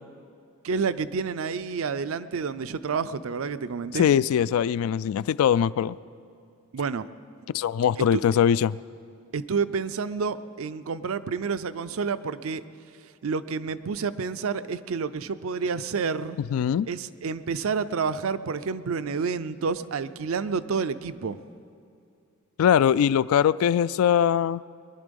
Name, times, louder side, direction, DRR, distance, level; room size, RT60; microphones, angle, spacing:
voice 1, 0.6-4.1 6.7-7.1 8.0-8.2 9.3-12.6 13.2-16.4 16.9-21.4, right 5 dB, 75° right, 13 dB, 0.5 m, -29 dB
voice 2, 3.9-6.0 7.5-8.8 16.5-16.9 22.6-24.6, left 8 dB, 85° left, 17 dB, 0.3 m, -21 dB
21.5 x 11.0 x 5.3 m, 2.5 s
head